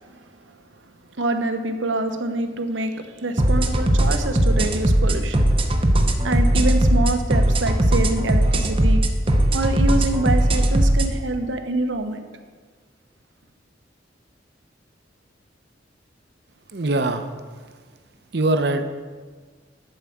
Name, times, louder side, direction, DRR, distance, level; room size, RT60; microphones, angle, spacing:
voice 1, 1.2-5.4 6.2-9.0 9.5-12.3, right 2 dB, 85° right, 7 dB, 0.9 m, -26 dB
sound 1, 3.4-11.1, right 1 dB, 30° right, 0.8 m, -19 dB
voice 2, 16.7-17.3 18.3-18.8, right 2 dB, 60° right, 8 dB, 0.7 m, -22 dB
11.0 x 4.8 x 7.2 m, 1.5 s
head